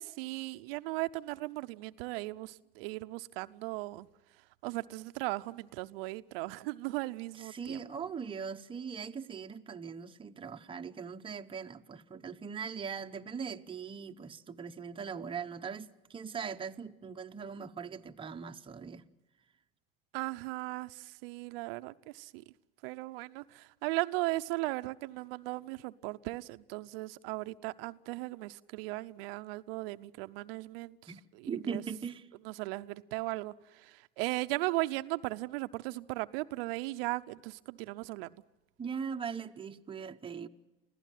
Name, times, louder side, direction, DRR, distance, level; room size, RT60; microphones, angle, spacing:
voice 1, 0.0-4.1 4.6-7.8 20.1-22.4 22.8-31.8 32.4-38.4, right 21 dB, 75° right, 0.7 m, -37 dB
voice 2, 7.3-19.0 31.1-31.2 31.5-32.3 38.8-40.5, right 6 dB, 15° right, 0.9 m, -40 dB
25.0 x 16.0 x 9.1 m
supercardioid pair, 105°, 29 cm